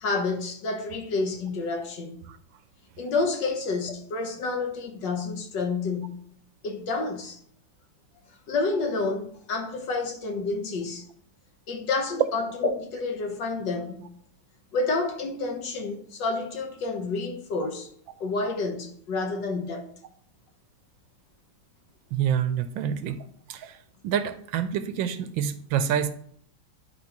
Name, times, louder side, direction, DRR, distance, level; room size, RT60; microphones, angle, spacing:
voice 1, 0.0-2.2 3.0-6.2 6.6-7.4 8.5-11.1 11.7-14.1 14.7-17.9 18.2-19.9, left 3 dB, 65° left, 1.6 m, -29 dB
voice 2, 22.1-23.2 23.5-23.8 24.0-26.1, right 8 dB, 80° right, 1.3 m, -27 dB
11.0 x 4.7 x 2.9 m
omnidirectional pair, 2.2 m